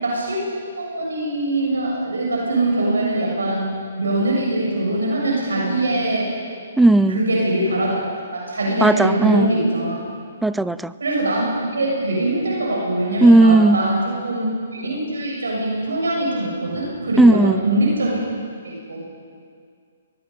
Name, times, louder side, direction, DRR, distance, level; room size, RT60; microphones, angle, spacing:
voice 1, 0.0-0.5 0.8-6.3 7.1-8.0 8.3-10.0 11.0-14.5 14.7-18.2 18.6-19.0, right 1 dB, 80° right, -3 dB, 7.1 m, -22 dB
voice 2, 6.8-7.2 8.8-9.5 10.4-10.9 13.2-13.8 17.2-17.6, right 2 dB, 5° right, 15 dB, 0.5 m, -14 dB
23.0 x 20.0 x 5.6 m, 2.2 s
figure-of-eight pair, 130°, 0 cm